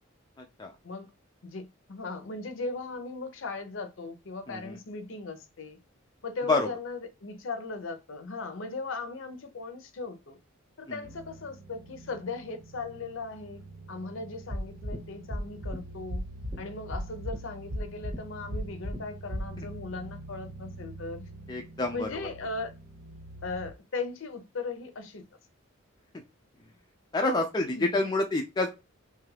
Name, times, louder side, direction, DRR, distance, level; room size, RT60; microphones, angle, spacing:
voice 1, 0.4-0.7 4.5-4.8 6.5-6.7 21.5-22.1 27.1-28.7, left 2 dB, 20° left, 0.3 m, -28 dB
voice 2, 1.4-5.8 6.2-10.4 10.8-13.6 13.9-16.2 16.6-21.3 21.9-22.7 23.4-25.3 27.8-28.0, left 3 dB, 65° left, 0.6 m, -38 dB
sound 1, 11.0-23.7, right 2 dB, 85° right, 0.7 m, -46 dB
sound 2, 14.5-15.0 15.3-15.8 16.1-16.6 16.9-17.4 17.7-18.2 18.5-19.0 19.3-19.4, equal, 20° right, 0.7 m, -33 dB
3.1 x 2.3 x 3.1 m
head